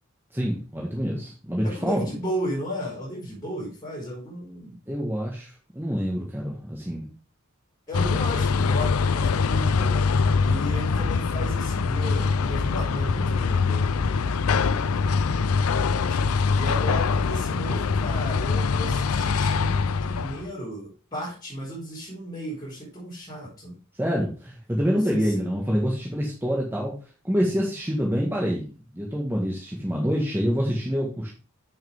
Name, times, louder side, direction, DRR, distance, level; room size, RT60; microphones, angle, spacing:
voice 1, 0.3-2.1 4.9-7.1 24.0-26.9 27.2-31.3, equal, 10° right, -3 dB, 1.6 m, -26 dB
voice 2, 1.6-4.8 7.9-10.0 10.4-23.8 24.8-25.5, equal, 20° left, -8 dB, 4.3 m, -35 dB
sound 1, 7.9-20.5, left 5 dB, 85° left, 0.5 m, -23 dB
8.1 x 6.5 x 3.6 m, 0.35 s
head